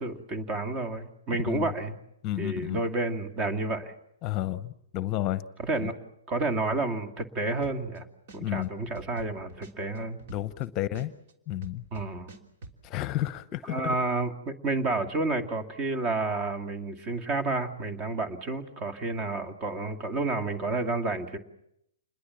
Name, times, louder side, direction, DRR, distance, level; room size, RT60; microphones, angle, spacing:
voice 1, 0.0-2.0 2.4-3.9 5.6-5.9 6.3-8.1 8.3-10.2 11.9-12.3 13.7-21.4, right 3 dB, 30° right, 9 dB, 2.4 m, -30 dB
voice 2, 2.2-2.8 4.2-5.4 5.8-5.9 8.4-8.7 10.3-11.1 11.5-11.8 12.8-13.9, left 14 dB, 30° left, 15 dB, 0.9 m, -31 dB
sound 1, 7.6-8.0 8.3-10.6 10.9-12.7, right 3 dB, 50° right, 3.2 m, -45 dB
28.0 x 21.5 x 7.3 m, 0.77 s
hypercardioid pair, 120°, 0 cm